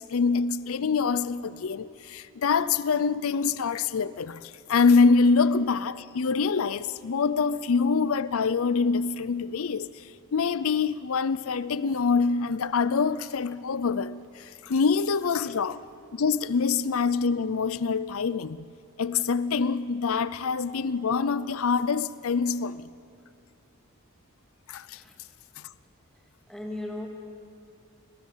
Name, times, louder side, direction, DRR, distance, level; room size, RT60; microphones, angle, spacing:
voice 1, 0.0-15.8 16.1-18.6 19.0-22.9 24.7-25.0 25.6-25.7, left 5 dB, 65° left, 17 dB, 0.5 m, -25 dB
voice 2, 26.5-27.1, left 1 dB, ahead, 0 dB, 2.5 m, -36 dB
28.5 x 20.0 x 7.3 m, 2.5 s
head